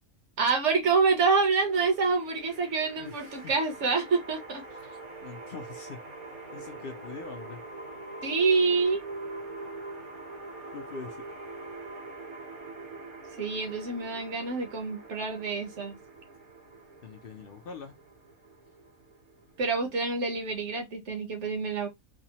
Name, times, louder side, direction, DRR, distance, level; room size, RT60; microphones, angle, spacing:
voice 1, 0.4-4.6 8.2-9.0 13.4-16.0 19.6-21.9, right 4 dB, 60° right, 1.2 m, -27 dB
sound 1, 1.6-20.5, right 3 dB, 90° right, 1.7 m, -44 dB
voice 2, 3.0-3.5 4.8-6.0 6.5-7.6 10.7-11.3 17.0-18.0, left 5 dB, 65° left, 0.5 m, -43 dB
3.4 x 2.0 x 2.8 m
omnidirectional pair, 1.5 m